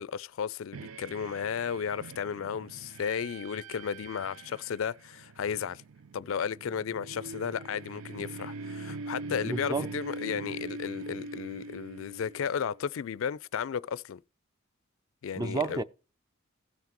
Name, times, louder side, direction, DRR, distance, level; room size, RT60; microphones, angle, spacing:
voice 1, 0.0-5.8 6.1-14.2 15.2-15.8, left 7 dB, 70° left, 0.4 m, -34 dB
sound 1, 0.7-12.8, right 3 dB, 85° right, 0.5 m, -43 dB
voice 2, 9.4-9.9 15.4-15.8, right 3 dB, 20° right, 0.4 m, -31 dB
16.5 x 5.8 x 3.0 m
head